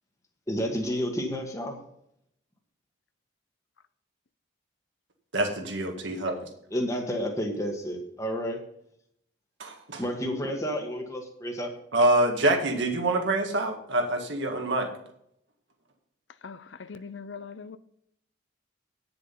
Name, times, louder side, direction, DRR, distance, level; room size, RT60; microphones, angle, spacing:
voice 1, 0.5-1.8 6.7-8.6 10.0-11.7, equal, 15° left, 1.5 m, -30 dB
voice 2, 5.3-6.4 9.6-10.0 11.9-14.9, right 2 dB, 65° right, 1.9 m, -25 dB
voice 3, 16.4-17.8, left 5 dB, 70° left, 0.5 m, -41 dB
9.9 x 6.9 x 5.5 m
head